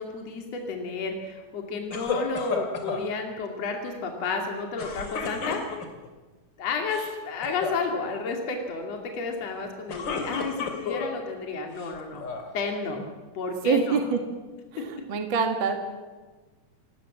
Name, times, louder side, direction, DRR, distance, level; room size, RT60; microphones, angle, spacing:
voice 1, 0.0-5.6 6.6-12.2 12.5-13.0 13.3-14.0, left 4 dB, 50° left, 2 dB, 3.6 m, -31 dB
sound 1, 1.9-3.1 4.8-6.1 6.8-7.1 7.4-7.8 9.7-11.2 11.8-12.5, left 5 dB, 35° left, 3.2 m, -32 dB
voice 2, 13.6-14.2 14.7-15.8, right 5 dB, 40° right, 5 dB, 2.5 m, -25 dB
28.5 x 19.5 x 7.5 m, 1.3 s
omnidirectional pair, 3.8 m